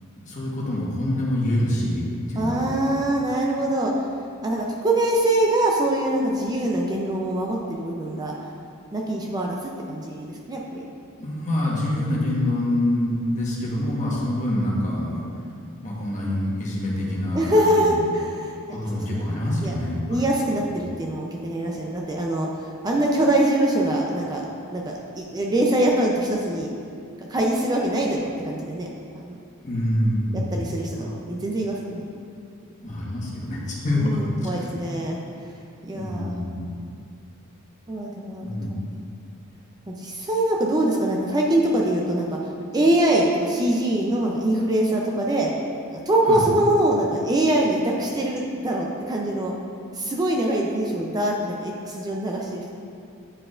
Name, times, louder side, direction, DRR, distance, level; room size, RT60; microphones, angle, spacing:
voice 1, 0.2-2.8 11.2-15.2 15.8-18.0 18.7-20.2 20.7-20.8 29.6-30.7 30.9-31.1 32.8-34.7 36.0-36.7 38.4-38.8 46.3-46.4, left 1 dB, 35° left, -5 dB, 1.3 m, -26 dB
voice 2, 2.4-3.9 4.4-8.3 8.9-10.9 17.3-18.5 19.1-19.2 19.6-19.7 20.1-24.5 24.7-26.7 27.3-29.4 30.3-32.1 33.9-35.5 35.8-36.3 37.9-38.5 39.9-42.3 42.7-45.5 45.9-49.5 49.9-52.7, right 1 dB, 20° right, -2 dB, 0.5 m, -23 dB
9.7 x 4.7 x 2.5 m, 2.4 s
head